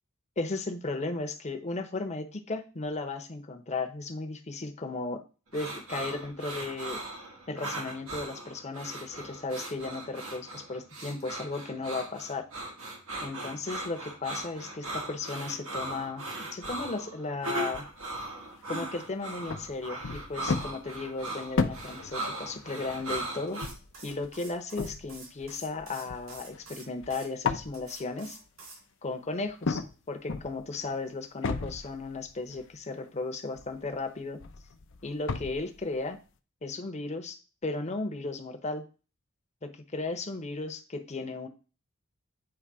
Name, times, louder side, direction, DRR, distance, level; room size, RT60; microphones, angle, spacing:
voice 1, 0.4-5.2 5.5-7.0 7.5-12.5 13.2-17.9 18.7-23.6 24.0-28.4 29.0-34.4 35.0-36.2 36.6-38.9 39.6-41.5, left 3 dB, 30° left, 6 dB, 0.9 m, -35 dB
sound 1, 5.5-23.7, right 2 dB, 80° right, 1.7 m, -38 dB
sound 2, 17.7-17.9 18.7-18.9 19.5-27.2 27.5-27.9 29.5-29.9 30.3-31.0 31.4-32.7 33.1-33.2 33.6-35.8, left 4 dB, 60° left, 0.6 m, -35 dB
sound 3, 23.5-27.3 27.7-28.8, right 3 dB, 65° right, 3.6 m, -48 dB
8.7 x 3.3 x 4.8 m, 0.35 s
head